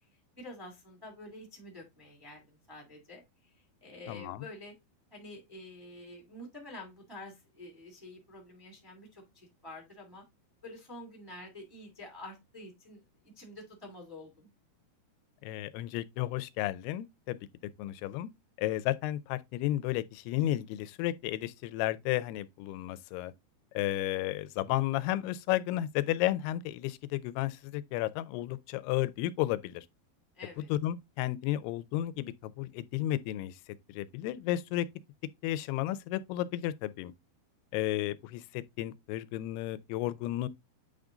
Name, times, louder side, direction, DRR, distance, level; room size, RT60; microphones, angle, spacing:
voice 1, 0.4-3.2 3.8-4.7 5.1-10.2 10.6-14.5 30.3-30.7, left 1 dB, 10° right, 1.3 m, -48 dB
voice 2, 4.1-4.4 15.4-17.4 17.8-18.3 18.6-23.3 23.7-29.9 30.6-33.6 33.9-34.9 35.4-37.1 37.7-40.5, left 14 dB, 90° left, 2.6 m, -33 dB
8.6 x 3.6 x 3.7 m
omnidirectional pair, 4.5 m